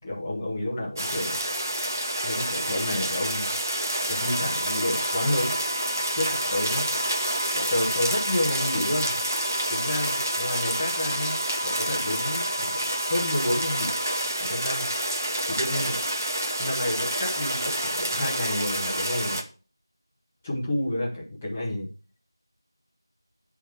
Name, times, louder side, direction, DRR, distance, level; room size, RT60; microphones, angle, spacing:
voice 1, 0.0-1.4 2.2-3.5 4.1-5.6 6.1-6.9 7.5-9.2 9.7-11.4 11.6-13.9 14.4-14.9 15.5-15.9 16.6-19.4 20.4-21.9, left 1 dB, 5° left, -7 dB, 0.6 m, -30 dB
sound 1, 1.0-19.4, right 1 dB, 40° right, 1.0 m, -28 dB
sound 2, 4.2-14.3, left 1 dB, 80° right, 1.5 m, -36 dB
9.0 x 3.5 x 6.0 m, 0.36 s
figure-of-eight pair, 175°, 2 cm